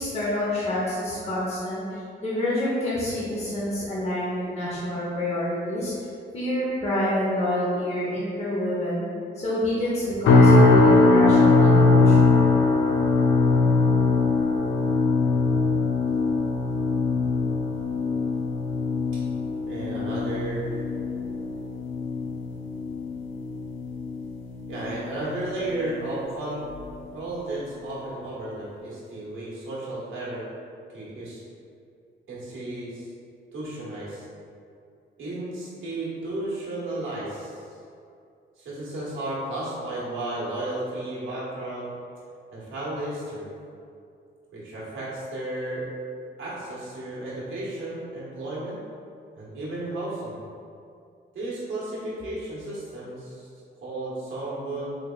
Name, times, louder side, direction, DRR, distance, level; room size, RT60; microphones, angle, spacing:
voice 1, 0.0-5.9 6.3-9.0 9.3-12.5, left 1 dB, 30° left, -8 dB, 0.9 m, -27 dB
sound 1, 10.3-25.5 25.8-26.2 26.7-26.9, left 3 dB, 70° left, 0.5 m, -21 dB
voice 2, 19.7-20.8 24.7-26.7 27.1-30.4 30.9-31.4 32.3-33.1 33.5-34.2 35.2-37.6 38.6-41.9 42.5-43.5 44.5-45.9 46.4-48.8 49.3-50.4 51.3-53.5 53.8-54.9, right 2 dB, 80° right, -8 dB, 1.3 m, -33 dB
4.4 x 3.3 x 2.3 m, 2.5 s
cardioid pair, 115°, 20 cm